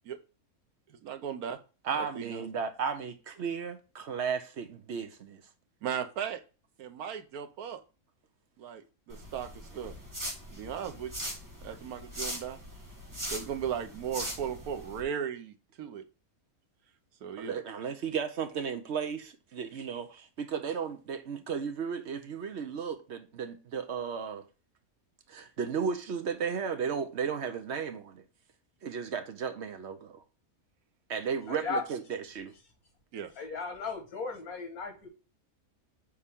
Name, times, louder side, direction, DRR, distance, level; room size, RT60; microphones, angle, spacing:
voice 1, 1.0-1.6 2.0-2.5 5.8-6.4 6.8-7.8 8.6-9.5 9.7-9.9 10.5-11.1 11.6-12.6 13.3-16.0 17.2-17.6 33.1-33.3, right 8 dB, 85° right, 1.3 m, -36 dB
voice 2, 1.8-5.4 17.4-24.4 25.3-28.2 28.8-30.2 31.1-32.5, right 6 dB, 55° right, 0.9 m, -34 dB
Salt Shaker, 9.1-15.0, equal, 15° right, 1.6 m, -41 dB
voice 3, 31.5-31.8 33.4-35.1, left 4 dB, 90° left, 2.1 m, -36 dB
6.7 x 4.3 x 3.6 m
omnidirectional pair, 1.5 m